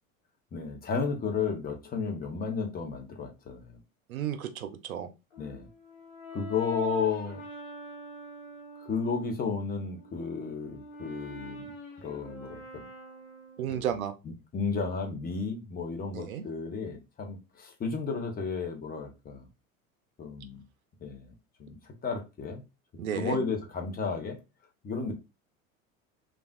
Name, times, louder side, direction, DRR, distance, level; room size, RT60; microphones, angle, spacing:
voice 1, 0.5-3.8 5.4-5.7 6.3-7.4 8.8-11.7 12.0-12.9 13.7-13.9 14.5-19.5 20.2-20.6 21.0-21.3 21.6-22.6 22.9-24.4 24.8-25.1, left 5 dB, 20° left, 0.7 m, -33 dB
voice 2, 4.1-5.1 13.6-14.1 16.1-16.4 23.0-23.4, right 9 dB, 85° right, 0.6 m, -33 dB
Brass instrument, 5.3-9.3 9.8-13.9, left 1 dB, 70° left, 1.1 m, -45 dB
3.3 x 2.4 x 2.3 m
hypercardioid pair, 80°, 41 cm